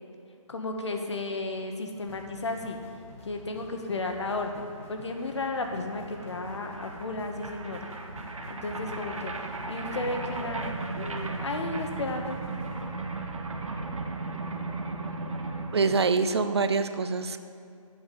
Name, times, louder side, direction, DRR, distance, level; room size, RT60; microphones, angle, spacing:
voice 1, 0.5-2.8 3.2-7.8 8.5-12.4, left 2 dB, 55° left, 4 dB, 1.4 m, -34 dB
sound 1, 1.9-12.8, left 3 dB, 25° left, 0.9 m, -53 dB
sound 2, 2.1-13.6, equal, ahead, 1.4 m, -50 dB
sound 3, 4.8-4.9 5.1-16.0, right 3 dB, 70° right, 1.3 m, -36 dB
voice 2, 15.7-17.4, right 4 dB, 50° right, 10 dB, 0.6 m, -25 dB
11.0 x 8.0 x 5.3 m, 2.5 s
figure-of-eight pair, 160°, 18 cm